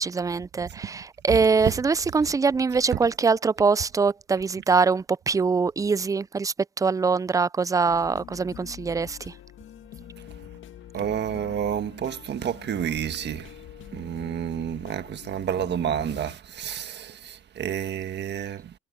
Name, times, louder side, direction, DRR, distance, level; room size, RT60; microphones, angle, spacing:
voice 1, 0.0-9.3, right 5 dB, 15° right, 0.3 m, -23 dB
sound 1, 7.8-16.4, left 11 dB, 75° left, 2.0 m, -45 dB
voice 2, 10.9-13.5 13.9-18.7, right 9 dB, 60° right, 1.5 m, -30 dB
cardioid pair, 90°, 20 cm